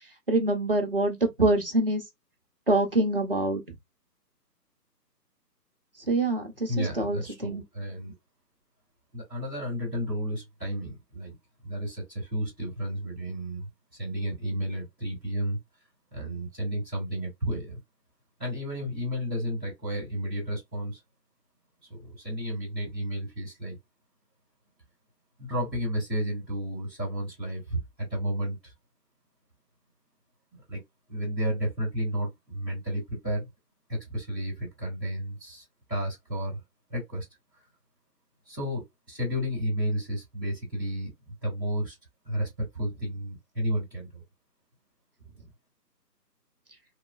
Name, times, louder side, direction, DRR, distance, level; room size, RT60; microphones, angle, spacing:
voice 1, 0.3-2.0 2.7-3.6 6.1-7.6, right 2 dB, 35° right, 0.5 m, -25 dB
voice 2, 6.7-8.1 9.1-11.3 11.6-13.7 14.0-15.6 16.1-17.8 18.4-21.0 21.9-23.8 25.4-28.7 30.7-30.8 31.1-33.5 33.9-36.6 36.9-37.2 38.4-41.9 42.2-44.2, equal, 5° left, 0.9 m, -32 dB
3.0 x 2.1 x 2.3 m
figure-of-eight pair, 155°, 50 cm